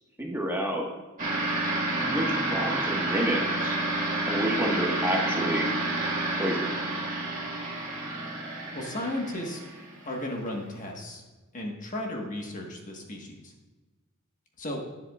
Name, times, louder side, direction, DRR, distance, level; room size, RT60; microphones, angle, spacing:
voice 1, 0.2-0.8 2.1-3.8 4.3-5.7 6.4-6.8, right 1 dB, 10° right, -1 dB, 1.4 m, -29 dB
sound 1, 1.2-10.3, right 2 dB, 40° right, 1.9 m, -30 dB
voice 2, 8.7-9.6 10.0-11.2 11.5-13.5 14.6-14.8, left 1 dB, 35° left, 0 dB, 1.4 m, -34 dB
11.5 x 10.0 x 2.4 m, 1.2 s
head